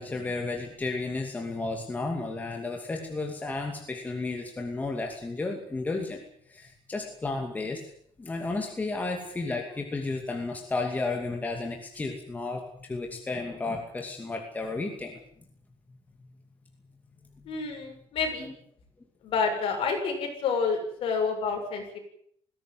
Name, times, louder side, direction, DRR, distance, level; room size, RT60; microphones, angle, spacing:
voice 1, 0.0-6.2 6.5-7.8 8.2-15.2, left 3 dB, 15° left, 2 dB, 2.6 m, -33 dB
voice 2, 17.4-18.5 19.2-22.0, left 5 dB, 50° left, 3 dB, 7.6 m, -29 dB
20.5 x 17.0 x 9.5 m, 0.67 s
cardioid pair, 175°, 11 cm